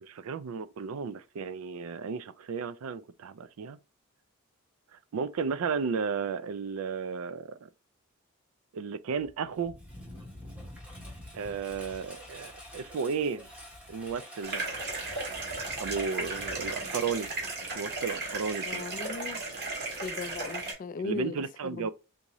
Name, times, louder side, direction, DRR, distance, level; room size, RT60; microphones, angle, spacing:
voice 1, 0.0-3.8 5.1-7.7 8.7-9.8 11.3-13.5 13.9-14.7 15.8-17.3 17.7-18.9 21.0-21.9, right 5 dB, 70° right, 0.4 m, -34 dB
Engine, 9.2-17.9, left 1 dB, 5° right, 0.9 m, -47 dB
sound 1, 14.4-20.7, right 3 dB, 50° right, 1.3 m, -35 dB
voice 2, 18.7-19.4 20.0-21.4 21.6-21.9, left 4 dB, 40° left, 0.3 m, -37 dB
3.6 x 2.7 x 3.0 m
head